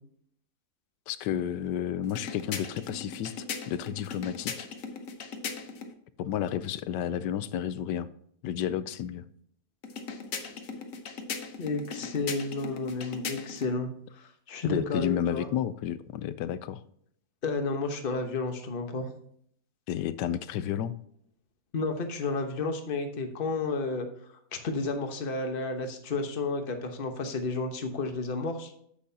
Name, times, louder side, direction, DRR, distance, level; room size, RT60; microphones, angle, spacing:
voice 1, 1.1-4.7 6.2-8.1 8.4-9.3 14.6-16.8 19.9-20.9, left 10 dB, 85° left, 15 dB, 1.2 m, -31 dB
sound 1, 2.0-5.9 9.8-13.7, left 5 dB, 55° left, 1.2 m, -39 dB
voice 2, 11.6-15.5 17.4-19.1 21.7-24.1 24.6-28.7, left 3 dB, 35° left, 5 dB, 1.1 m, -31 dB
9.7 x 7.8 x 2.8 m, 0.66 s
omnidirectional pair, 1.8 m